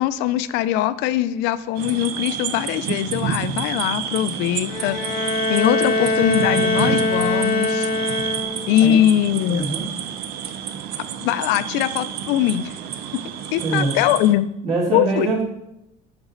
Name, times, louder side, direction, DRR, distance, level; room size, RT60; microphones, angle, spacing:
voice 1, 0.0-5.0 5.5-7.9 8.7-9.7 11.2-12.7 13.5-14.5 14.9-15.3, left 12 dB, 80° left, 13 dB, 0.4 m, -21 dB
sound 1, 1.7-14.3, right 8 dB, 60° right, 0.6 m, -29 dB
Bowed string instrument, 4.7-8.8, left 2 dB, 50° left, 0.8 m, -22 dB
voice 2, 8.7-9.1 9.5-9.8 13.6-13.9 14.6-15.4, right 3 dB, 35° right, -4 dB, 2.3 m, -24 dB
8.1 x 5.2 x 3.9 m, 0.84 s
cardioid pair, 170°, 18 cm